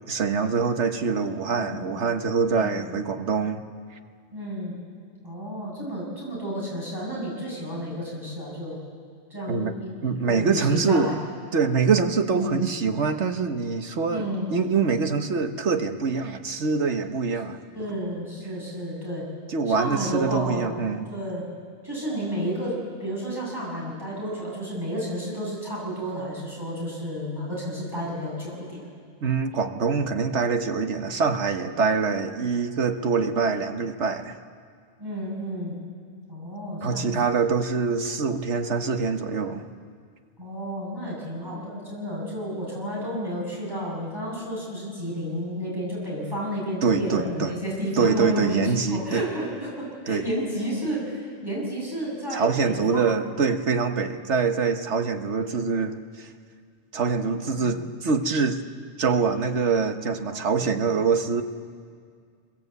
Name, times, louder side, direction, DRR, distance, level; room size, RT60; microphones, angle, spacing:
voice 1, 0.1-3.6 9.5-9.7 10.0-11.2 11.5-17.6 19.5-21.1 29.2-34.4 36.8-39.6 46.8-47.5 47.9-49.2 50.1-50.2 52.3-56.3 56.9-58.6 59.0-61.4, right 5 dB, 75° right, 7 dB, 1.5 m, -24 dB
voice 2, 2.4-2.8 4.3-4.8 5.2-8.8 9.3-11.1 12.3-12.6 14.1-14.6 17.7-19.3 19.8-20.7 21.1-21.5 21.8-28.9 35.0-35.7 36.3-37.3 40.4-48.6 48.9-53.2 57.1-57.8 60.3-60.8, equal, 20° right, -5 dB, 7.7 m, -31 dB
25.0 x 21.5 x 8.2 m, 2.1 s
omnidirectional pair, 1.2 m